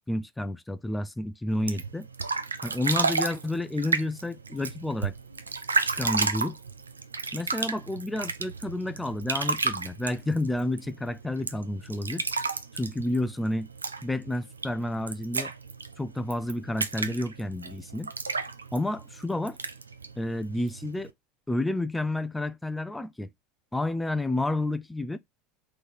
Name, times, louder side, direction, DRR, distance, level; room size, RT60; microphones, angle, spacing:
voice 1, 0.1-2.1 2.6-5.1 6.0-6.6 7.3-12.2 12.7-13.7 14.0-15.5 16.0-18.1 18.7-19.6 20.2-21.1 21.5-23.3 23.7-25.2, left 1 dB, 10° left, 0.4 m, -30 dB
sound 1, 1.5-21.1, right 4 dB, 85° right, 0.4 m, -33 dB
3.9 x 3.2 x 4.0 m
figure-of-eight pair, 75°, 0 cm